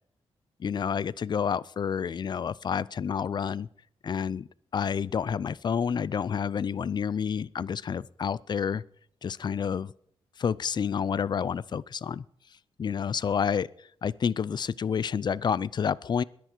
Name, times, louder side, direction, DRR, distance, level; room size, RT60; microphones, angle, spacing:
voice 1, 0.6-3.7 4.0-4.5 4.7-8.8 9.2-9.9 10.4-12.2 12.8-16.2, left 7 dB, 45° left, 21 dB, 0.5 m, -29 dB
20.5 x 10.5 x 4.5 m, 0.65 s
cardioid pair, 95°, 10 cm